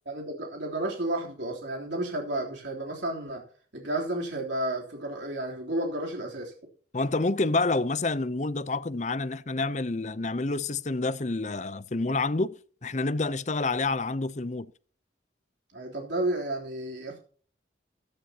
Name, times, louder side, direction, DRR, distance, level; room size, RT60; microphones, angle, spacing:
voice 1, 0.0-3.4 3.7-6.5 15.7-17.2, right 1 dB, 75° right, 3.5 m, -32 dB
voice 2, 6.9-14.7, left 3 dB, 40° left, 0.7 m, -28 dB
15.0 x 14.0 x 2.9 m
head